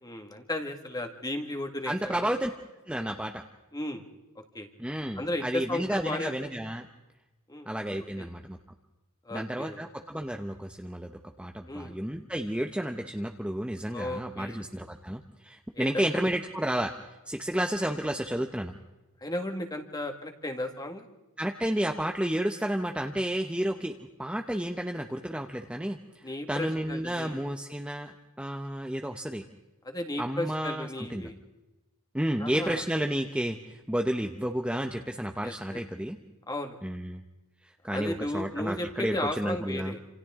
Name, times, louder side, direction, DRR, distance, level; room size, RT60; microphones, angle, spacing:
voice 1, 0.0-2.3 3.7-4.0 4.5-4.7 5.2-6.3 7.5-7.7 8.2-8.3 9.3-9.8 11.7-12.0 13.9-14.6 15.7-16.2 19.2-21.1 26.2-27.4 29.8-31.3 32.4-32.8 35.4-35.8 36.5-36.8 37.9-40.0, left 1 dB, 20° left, 5 dB, 1.8 m, -35 dB
voice 2, 1.8-2.5 2.9-3.4 4.8-6.9 7.7-8.6 9.3-11.1 11.4-16.9 17.3-18.7 21.4-29.4 30.2-31.3 32.1-36.2 36.8-37.2 37.6-39.9, right 1 dB, 5° right, 4 dB, 0.8 m, -31 dB
27.5 x 27.0 x 3.7 m, 1.1 s
head